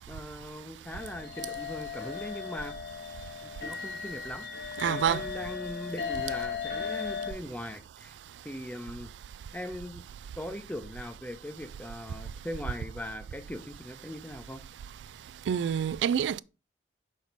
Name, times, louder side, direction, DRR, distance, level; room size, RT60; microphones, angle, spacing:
voice 1, 0.1-2.7 3.4-4.5 4.9-8.2 8.4-9.1 9.5-10.0 10.4-14.6, left 1 dB, 10° left, 0.6 m, -40 dB
sound 1, 0.9-7.3, left 6 dB, 65° left, 2.1 m, -37 dB
voice 2, 4.8-5.2 15.5-16.4, right 8 dB, 80° right, 0.3 m, -27 dB
6.1 x 4.2 x 4.0 m
head